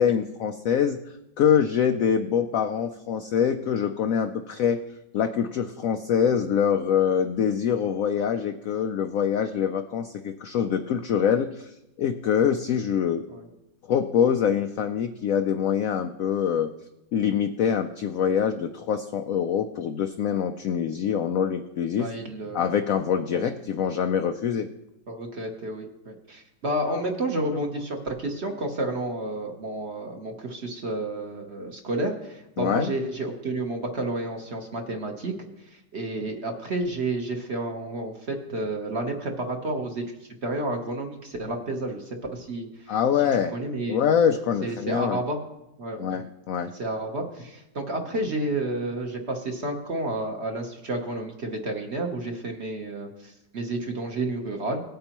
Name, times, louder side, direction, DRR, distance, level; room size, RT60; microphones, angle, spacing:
voice 1, 0.0-4.8 5.1-13.2 13.9-16.7 17.1-22.1 22.5-24.7 26.8-27.1 27.5-27.7 32.6-32.9 42.9-43.5 43.9-45.2 46.0-46.7, left 8 dB, 80° left, 7 dB, 0.7 m, -25 dB
voice 2, 22.0-22.6 23.3-23.5 25.1-35.3 35.9-40.1 40.4-42.0 42.3-42.9 43.5-44.0 44.6-45.4 45.8-46.2 46.8-54.8, right 2 dB, 45° right, 3 dB, 1.1 m, -30 dB
18.0 x 8.8 x 3.0 m, 0.90 s
omnidirectional pair, 2.0 m